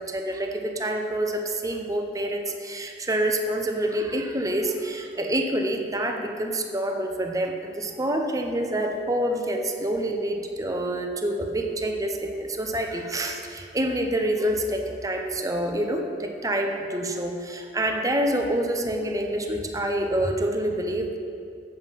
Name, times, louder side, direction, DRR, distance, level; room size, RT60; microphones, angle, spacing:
voice 1, 0.0-21.2, right 1 dB, 20° right, 3 dB, 0.8 m, -27 dB
7.8 x 7.5 x 5.3 m, 2.3 s
head